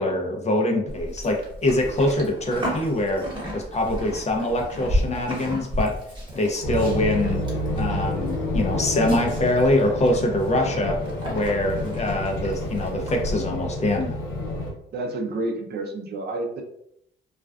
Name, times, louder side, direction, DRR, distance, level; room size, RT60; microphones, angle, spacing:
voice 1, 0.0-3.2 3.5-5.9 6.3-7.5 7.8-11.0 11.3-14.2, left 1 dB, 35° left, 2 dB, 0.5 m, -24 dB
Livestock farm animals working animals, 0.9-13.3, equal, 20° right, 1.1 m, -33 dB
sound 1, 6.6-14.7, left 1 dB, 85° left, 0.7 m, -29 dB
voice 2, 14.9-16.6, right 2 dB, 55° right, 2 dB, 0.5 m, -29 dB
2.4 x 2.2 x 2.3 m, 0.73 s
cardioid pair, 90°, 20 cm